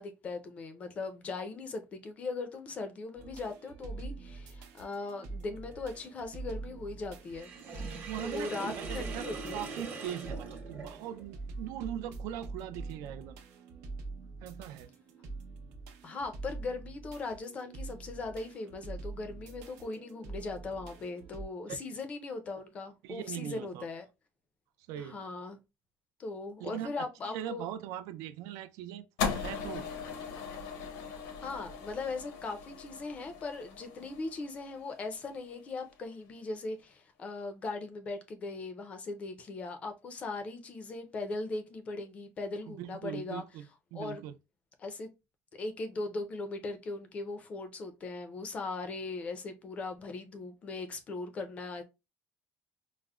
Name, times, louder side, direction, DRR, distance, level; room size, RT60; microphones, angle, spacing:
voice 1, 0.0-9.7 16.0-24.0 25.0-25.6 26.2-27.6 31.4-43.4 43.9-44.2 44.8-45.1 45.5-51.8, left 3 dB, 25° left, 0.4 m, -39 dB
sound 1, 3.2-21.5, right 3 dB, 90° right, 0.8 m, -45 dB
Sink (filling or washing), 7.3-11.3, right 4 dB, 40° right, 0.9 m, -42 dB
voice 2, 8.1-13.4 14.4-14.9 21.7-21.8 23.0-23.9 24.9-25.2 26.6-26.9 27.2-29.1 29.3-29.9 42.7-44.3, right 11 dB, 70° right, 0.3 m, -40 dB
sound 2, 29.2-35.5, left 6 dB, 85° left, 0.8 m, -39 dB
4.7 x 2.0 x 2.2 m
cardioid pair, 180°, 5 cm